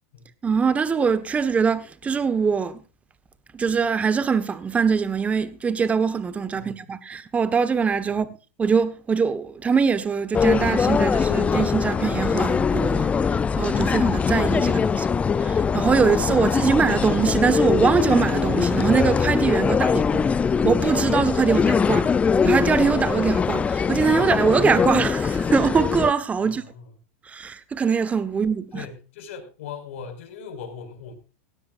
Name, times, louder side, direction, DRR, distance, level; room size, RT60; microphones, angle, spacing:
voice 1, 0.4-2.8 3.5-8.3 8.6-13.1 13.6-15.0 15.4-20.3 20.6-22.1 22.4-26.6 27.3-28.9, right 5 dB, 20° right, 1.4 m, -22 dB
sound 1, 10.3-26.1, left 6 dB, 20° left, 0.6 m, -22 dB
voice 2, 19.8-20.2 26.4-26.9 28.7-31.1, left 6 dB, 70° left, 5.7 m, -39 dB
17.0 x 16.5 x 2.6 m
hypercardioid pair, 110°, 7 cm